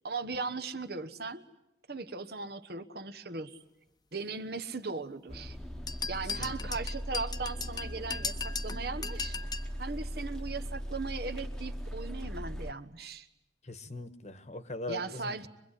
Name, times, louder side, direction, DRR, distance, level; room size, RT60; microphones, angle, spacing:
voice 1, 0.0-1.4 1.9-3.6 4.1-5.6 6.1-9.4 9.8-13.3 14.9-15.5, right 4 dB, 55° right, 11 dB, 1.2 m, -38 dB
sound 1, 5.3-12.7, equal, 5° left, 1.2 m, -39 dB
sound 2, 5.9-9.7, left 5 dB, 20° left, 1.0 m, -37 dB
voice 2, 6.4-6.7 13.6-15.4, left 2 dB, 40° left, 11 dB, 1.4 m, -41 dB
25.0 x 22.5 x 9.9 m, 0.85 s
head